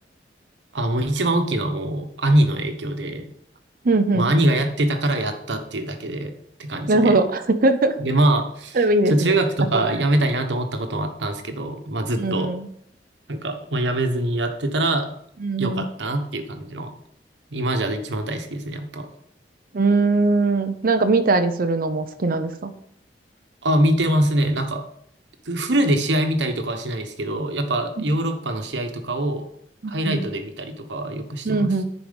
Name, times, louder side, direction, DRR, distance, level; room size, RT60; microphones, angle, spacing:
voice 1, 0.7-3.2 4.1-6.3 6.6-7.2 8.0-12.5 13.3-15.1 15.6-16.9 17.5-19.1 23.6-24.8 25.4-29.4 29.9-31.7, right 1 dB, 90° right, 6 dB, 1.2 m, -23 dB
voice 2, 3.8-4.3 6.9-8.0 8.7-9.4 9.7-9.9 12.2-12.7 15.4-15.9 19.7-22.7 29.8-30.2 31.4-31.8, right 2 dB, 55° right, 9 dB, 0.7 m, -20 dB
10.5 x 4.7 x 5.2 m, 0.70 s
head